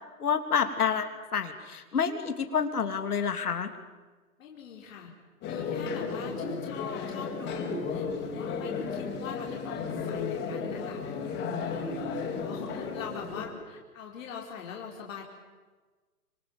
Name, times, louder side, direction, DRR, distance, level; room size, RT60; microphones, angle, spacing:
voice 1, 0.2-3.7, left 7 dB, 75° left, 8 dB, 3.2 m, -28 dB
voice 2, 4.4-5.1 5.4-11.0 11.4-15.2, left 7 dB, 60° left, 0 dB, 4.6 m, -42 dB
sound 1, 5.4-13.5, left 5 dB, 25° left, 5.2 m, -34 dB
26.5 x 25.5 x 7.4 m, 1.3 s
hypercardioid pair, 130°, 45 cm